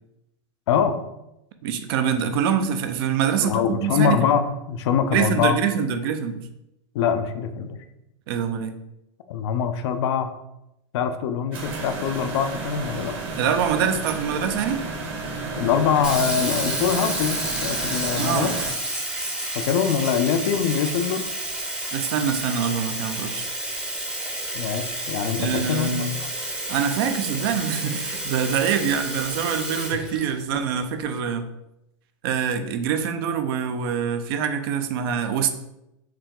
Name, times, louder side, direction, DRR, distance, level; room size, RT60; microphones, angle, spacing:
voice 1, 0.7-1.0 3.4-5.6 6.9-7.8 9.3-10.3 10.9-13.2 15.5-18.5 19.5-21.2 24.5-26.1, left 7 dB, 60° left, 8 dB, 0.5 m, -24 dB
voice 2, 1.6-4.4 5.1-6.4 8.3-8.7 13.4-14.8 18.2-18.5 21.9-23.5 25.4-26.1 26.7-31.5 32.2-35.5, right 7 dB, 50° right, 8 dB, 0.5 m, -25 dB
sound 1, 11.5-18.7, right 3 dB, 35° right, 1.0 m, -32 dB
Sink (filling or washing), 16.0-30.8, right 1 dB, 5° right, 0.7 m, -30 dB
4.7 x 2.8 x 3.7 m, 0.87 s
supercardioid pair, 145°, 15 cm